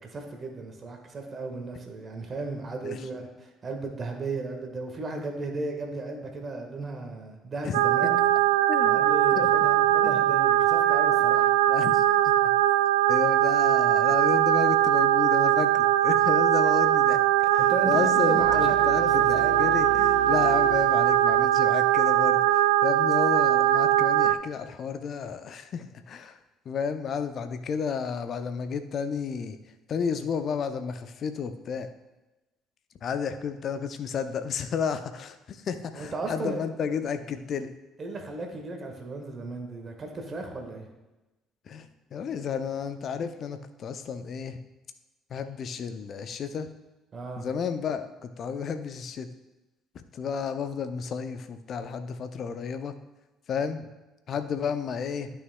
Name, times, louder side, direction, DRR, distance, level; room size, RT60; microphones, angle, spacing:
voice 1, 0.0-8.2 8.8-11.5 17.6-19.5 35.9-36.6 38.0-40.9 47.1-47.4, right 3 dB, 40° right, 3 dB, 1.5 m, -35 dB
sound 1, 7.7-24.3, right 13 dB, 75° right, 0.3 m, -21 dB
voice 2, 8.7-9.0 9.4-9.5 10.0-10.3 11.7-12.3 13.1-26.4 26.7-29.6 29.9-31.9 33.0-37.8 41.7-44.6 45.3-46.7 47.4-49.3 49.9-53.0 53.5-53.9 54.3-55.3, left 6 dB, 50° left, 9 dB, 0.6 m, -32 dB
sound 2, 18.4-22.3, left 2 dB, 65° left, 1.2 m, -40 dB
12.5 x 5.7 x 2.3 m, 1.1 s
figure-of-eight pair, 50°, 0 cm